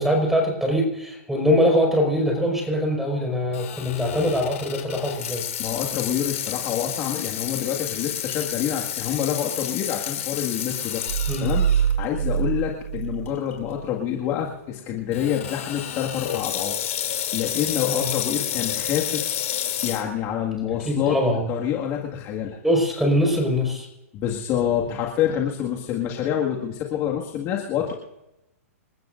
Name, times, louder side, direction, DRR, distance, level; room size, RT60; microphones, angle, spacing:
voice 1, 0.0-5.4 11.3-11.5 17.9-18.1 20.6-21.5 22.6-23.9, equal, 5° right, 1 dB, 5.0 m, -22 dB
Water tap faucet / Sink (filling or washing), 3.5-11.9 12.4-12.5 13.3-13.5 15.1-20.0, left 10 dB, 65° left, 3.1 m, -30 dB
voice 2, 5.6-11.0 11.4-11.6 12.0-16.8 17.0-19.3 19.8-21.2 21.5-22.6 24.1-28.0, left 9 dB, 35° left, -1 dB, 2.0 m, -27 dB
sound 1, 11.1-13.9, right 8 dB, 80° right, 0.5 m, -25 dB
27.5 x 13.5 x 2.6 m, 0.92 s
hypercardioid pair, 135°, 8 cm